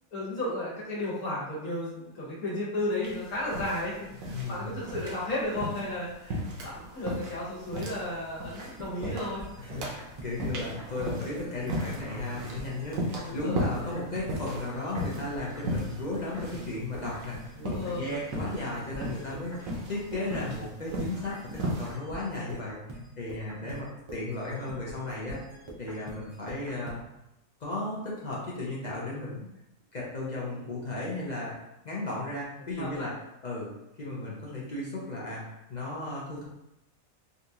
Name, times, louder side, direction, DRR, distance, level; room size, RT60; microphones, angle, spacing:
voice 1, 0.1-9.4 13.2-13.6 17.6-18.2 23.6-23.8 30.5-30.7 32.8-33.1, left 1 dB, 75° left, -6 dB, 1.5 m, -34 dB
sound 1, 3.0-21.9, equal, 70° right, 1.1 m, -37 dB
voice 2, 4.3-4.8 9.6-22.8 23.2-25.4 25.8-27.0 27.6-29.5 29.9-31.6 31.8-33.1 33.4-33.7 34.0-36.4, left 2 dB, 55° left, -5 dB, 0.5 m, -35 dB
sound 2, 8.5-14.3 14.6-27.0, right 1 dB, 50° right, 0.3 m, -45 dB
3.8 x 2.4 x 2.7 m, 0.88 s
omnidirectional pair, 1.5 m